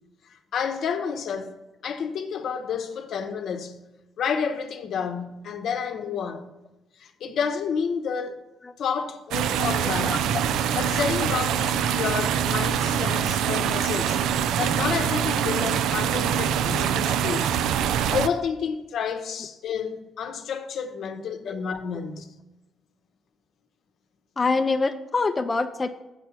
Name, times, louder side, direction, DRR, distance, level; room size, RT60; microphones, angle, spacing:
voice 1, 0.5-1.5 1.8-3.8 4.2-6.5 7.0-8.3 8.8-10.4 10.7-14.2 14.6-17.6 18.1-22.3, left 6 dB, 70° left, 0.8 m, -30 dB
sound 1, 9.3-18.3, right 9 dB, 85° right, 0.3 m, -24 dB
voice 2, 9.8-10.2 24.4-25.9, left 3 dB, 30° left, 0.4 m, -25 dB
7.6 x 4.5 x 6.8 m
cardioid pair, 90°, 0 cm